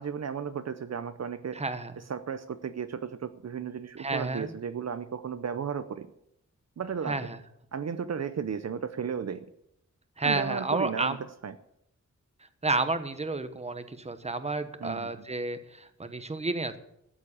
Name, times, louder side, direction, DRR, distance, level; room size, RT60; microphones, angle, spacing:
voice 1, 0.0-1.6 2.0-6.1 6.8-7.2 7.7-9.4 10.2-11.6 14.8-15.1, right 7 dB, 60° right, 10 dB, 0.7 m, -34 dB
voice 2, 1.5-1.9 4.0-4.5 7.1-7.4 10.2-11.2 12.6-16.8, right 3 dB, 20° right, 10 dB, 1.1 m, -31 dB
13.0 x 7.5 x 8.6 m, 0.78 s
wide cardioid pair, 125°, 30 cm